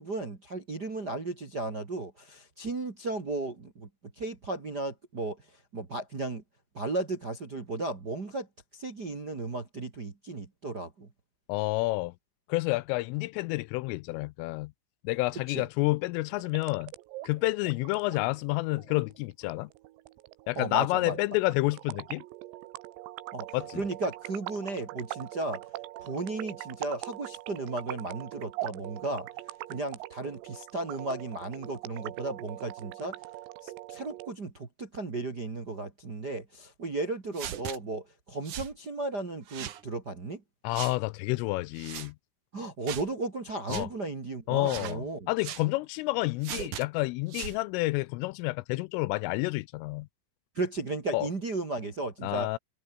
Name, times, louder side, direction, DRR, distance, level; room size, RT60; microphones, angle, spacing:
voice 1, 0.0-3.9 4.1-6.4 6.7-8.5 8.7-11.1 15.5-15.6 20.5-21.2 23.3-25.6 26.0-29.3 29.7-33.2 33.6-40.4 42.5-45.3 50.5-52.5, right 2 dB, 35° right, 1.6 m, -35 dB
voice 2, 11.5-12.1 12.5-14.7 15.0-16.9 17.2-19.7 20.5-22.2 23.5-23.8 40.6-42.1 43.7-43.9 44.5-50.1 51.1-51.3 52.2-52.6, left 22 dB, 85° left, 3.1 m, -29 dB
sound 1, 16.3-34.3, right 17 dB, 90° right, 3.9 m, -42 dB
sound 2, 37.3-37.8 38.5-38.7 39.5-39.8 40.7-41.0 41.8-42.1 42.9-43.1 43.7-43.9 44.6-45.0 45.4-45.7 46.4-46.8 47.3-47.6, right 11 dB, 65° right, 2.0 m, -38 dB
omnidirectional pair, 5.9 m